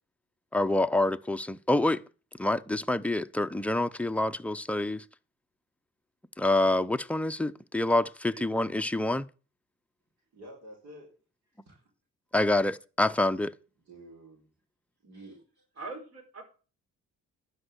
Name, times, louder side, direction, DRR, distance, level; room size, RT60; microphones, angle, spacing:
voice 1, 0.5-2.0 2.4-5.0 6.4-9.3 12.3-13.5, left 2 dB, 5° left, 0.6 m, -27 dB
voice 2, 10.3-11.1 11.4-11.8 13.9-14.5 15.0-15.4, right 1 dB, 70° right, 4.6 m, -49 dB
voice 3, 15.8-16.4, right 3 dB, 50° right, 4.9 m, -41 dB
11.5 x 5.6 x 7.9 m
cardioid pair, 90°, 30 cm